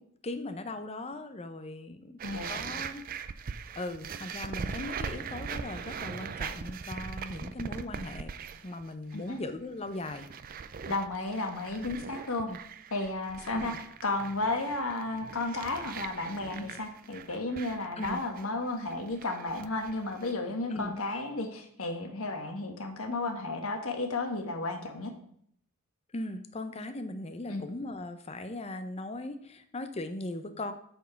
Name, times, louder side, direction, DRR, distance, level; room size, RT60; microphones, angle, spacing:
voice 1, 0.2-2.1 2.5-3.0 3.5-8.3 8.6-10.3 11.8-12.0 12.5-12.6 13.5-13.8 18.0-18.2 20.7-20.9 26.1-30.7, left 2 dB, 30° left, 9 dB, 0.6 m, -38 dB
voice 2, 2.2-2.6 9.1-9.4 10.9-12.5 12.9-13.7 14.0-25.1 27.5-27.6, left 2 dB, 70° left, 5 dB, 1.3 m, -33 dB
sound 1, 2.2-8.8 9.1-9.5 9.8-20.3, right 6 dB, 40° right, 0.4 m, -41 dB
8.3 x 4.5 x 5.8 m, 0.67 s
head